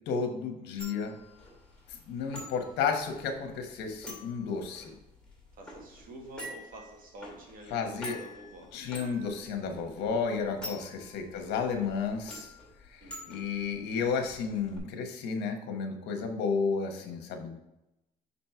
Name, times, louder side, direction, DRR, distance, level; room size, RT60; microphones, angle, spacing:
voice 1, 0.1-1.2 1.9-4.9 7.7-8.2 8.7-12.5 12.9-17.6, left 5 dB, 85° left, 4 dB, 1.2 m, -32 dB
sound 1, 0.8-14.8, left 1 dB, 5° left, 2.3 m, -48 dB
voice 2, 5.5-8.8 13.0-13.6, right 1 dB, 55° right, 0 dB, 1.9 m, -49 dB
6.3 x 4.3 x 4.4 m, 0.89 s
cardioid pair, 110°, 17 cm